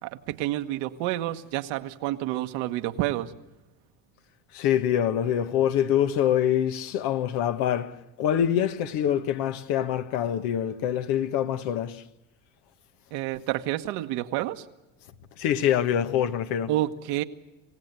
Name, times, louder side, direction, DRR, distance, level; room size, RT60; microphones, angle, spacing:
voice 1, 0.0-3.3 13.1-14.6 16.7-17.2, right 15 dB, 75° right, 1.4 m, -29 dB
voice 2, 4.5-12.0 15.4-16.7, left 10 dB, 70° left, 1.4 m, -25 dB
27.0 x 16.5 x 8.1 m
supercardioid pair, 85°, 39 cm